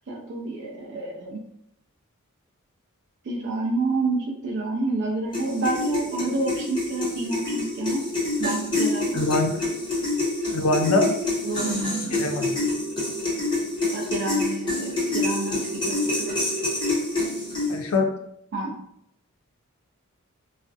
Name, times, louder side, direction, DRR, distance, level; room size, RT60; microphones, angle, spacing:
voice 1, 0.1-1.4 3.2-8.1 8.4-9.2 11.4-12.2 13.9-16.4 18.5-18.8, right 2 dB, 55° right, -2 dB, 0.4 m, -29 dB
sound 1, 5.3-17.9, left 2 dB, 20° left, 0.9 m, -27 dB
voice 2, 9.1-9.6 10.5-11.1 12.1-12.5 17.7-18.1, left 2 dB, 80° left, 4 dB, 0.4 m, -23 dB
2.4 x 2.0 x 2.5 m, 0.75 s
head